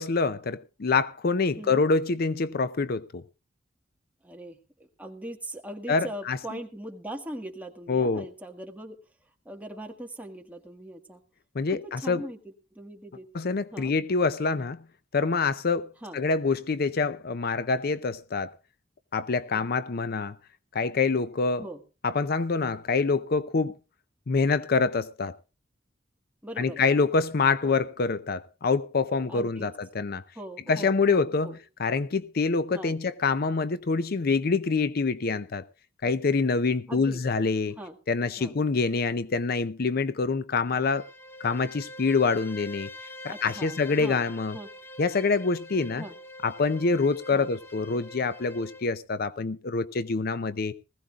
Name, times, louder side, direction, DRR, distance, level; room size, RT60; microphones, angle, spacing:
voice 1, 0.0-3.2 5.9-6.4 7.9-8.3 11.6-12.2 13.3-14.8 15.1-15.9 16.1-18.5 19.1-20.3 20.7-21.7 22.0-23.7 24.3-25.4 26.6-30.2 30.7-31.5 31.8-35.6 36.0-37.7 38.1-41.0 41.4-42.9 43.2-44.5 45.0-46.0 46.4-50.7, left 4 dB, 50° left, 0.6 m, -26 dB
voice 2, 4.2-9.0 9.4-11.2 11.7-13.3 13.7-13.9 16.0-16.2 19.5-19.7 21.6-21.8 26.4-26.9 27.6-27.8 29.3-29.7 30.3-31.6 32.7-33.0 36.9-37.2 37.8-37.9 38.4-38.6 43.2-44.7 46.0-46.2 47.3-47.5, right 1 dB, 10° right, 1.7 m, -40 dB
Bowed string instrument, 40.6-48.9, left 1 dB, 15° left, 1.6 m, -45 dB
20.0 x 15.5 x 2.4 m
head